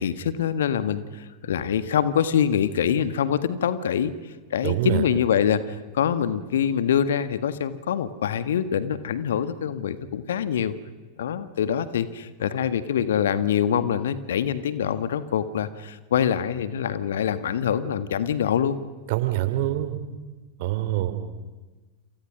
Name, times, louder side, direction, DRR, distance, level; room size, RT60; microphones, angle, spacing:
voice 1, 0.0-4.1 4.5-10.7 11.2-18.8, left 8 dB, 60° left, 13 dB, 1.6 m, -25 dB
voice 2, 4.6-5.0 19.1-20.0 20.6-21.1, right 15 dB, 50° right, 10 dB, 3.1 m, -25 dB
29.0 x 27.5 x 6.4 m, 1.3 s
figure-of-eight pair, 90°, 0 cm